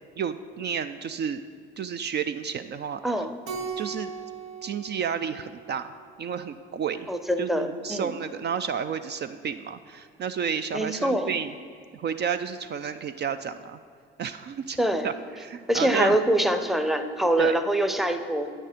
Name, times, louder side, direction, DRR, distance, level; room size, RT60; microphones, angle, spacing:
voice 1, 0.2-1.4 1.8-3.2 3.8-4.1 4.6-5.9 6.2-7.1 7.4-11.5 11.9-13.8 14.2-14.8 15.0-16.2 17.4-17.6, right 7 dB, 35° right, 10 dB, 0.4 m, -31 dB
voice 2, 3.0-3.3 7.1-8.1 10.7-11.3 14.8-15.1 15.7-18.5, right 1 dB, ahead, 8 dB, 0.7 m, -24 dB
Keyboard (musical), 3.5-6.1, right 5 dB, 75° right, 1.0 m, -38 dB
8.8 x 6.4 x 5.1 m, 2.3 s
hypercardioid pair, 50°, 30 cm